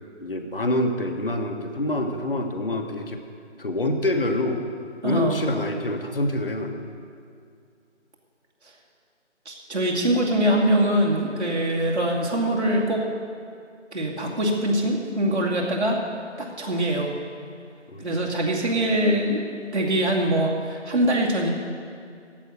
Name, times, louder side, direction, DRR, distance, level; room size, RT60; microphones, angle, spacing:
voice 1, 0.2-3.2 3.6-4.6 5.0-6.8 17.9-18.2, left 1 dB, 50° left, 4 dB, 1.4 m, -26 dB
voice 2, 5.0-5.6 9.5-13.0 13.9-16.0 16.4-17.1 18.0-19.5 19.7-21.5, right 1 dB, 65° right, -3 dB, 2.6 m, -23 dB
15.0 x 5.6 x 9.5 m, 2.3 s
figure-of-eight pair, 165°, 36 cm